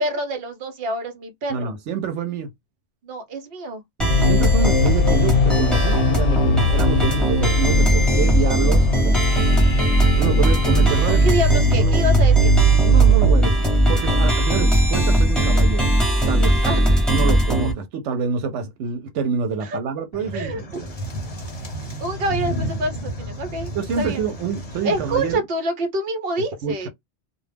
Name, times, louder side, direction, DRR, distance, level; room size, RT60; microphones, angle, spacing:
voice 1, 0.0-1.7 3.0-3.8 11.1-12.5 16.6-16.9 19.6-19.8 20.3-20.6 22.0-23.7 24.0-24.2 24.8-26.9, right 1 dB, 60° right, 0.9 m, -26 dB
voice 2, 1.5-2.5 4.0-9.2 10.2-12.0 12.7-15.9 16.3-16.6 17.1-20.9 23.7-25.4 26.6-26.9, right 6 dB, 90° right, 0.9 m, -27 dB
sound 1, 4.0-17.7, equal, ahead, 0.8 m, -19 dB
sound 2, 4.1-13.3, equal, 90° left, 0.9 m, -20 dB
sound 3, 20.1-25.4, equal, 35° left, 0.8 m, -31 dB
2.3 x 2.1 x 3.3 m
omnidirectional pair, 1.2 m